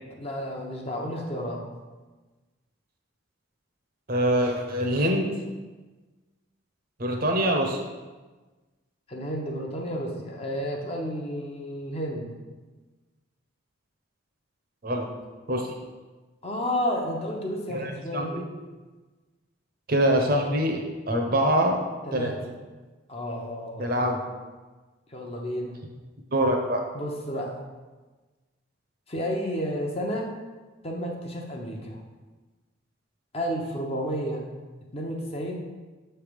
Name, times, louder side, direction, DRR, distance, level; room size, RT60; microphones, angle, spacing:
voice 1, 0.2-1.6 9.1-12.3 16.4-18.5 22.1-22.5 23.1-24.0 25.1-25.7 26.9-27.6 29.1-30.3 30.8-32.0 33.3-34.4 34.9-35.7, equal, 30° left, 0 dB, 0.7 m, -31 dB
voice 2, 4.1-5.2 7.0-7.8 14.8-15.1 15.5-15.7 17.7-18.4 19.9-21.8 22.1-22.3 23.8-24.2 26.3-26.8, right 1 dB, 45° right, 2 dB, 0.7 m, -24 dB
6.8 x 3.4 x 5.1 m, 1.3 s
head